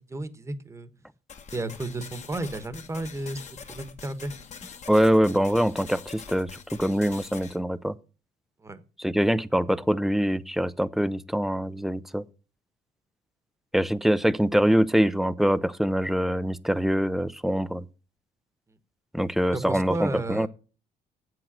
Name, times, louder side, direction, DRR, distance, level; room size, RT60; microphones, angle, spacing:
voice 1, 0.1-0.9 1.5-3.4 3.7-4.3 8.6-8.8 19.5-20.5, right 2 dB, 15° right, 1.1 m, -32 dB
sound 1, 1.3-7.6, left 6 dB, 45° left, 1.3 m, -44 dB
voice 2, 4.9-6.5 6.8-7.9 9.0-12.2 13.7-17.8 19.1-20.5, equal, ahead, 0.5 m, -24 dB
7.7 x 7.7 x 7.3 m
cardioid pair, 110°, 17 cm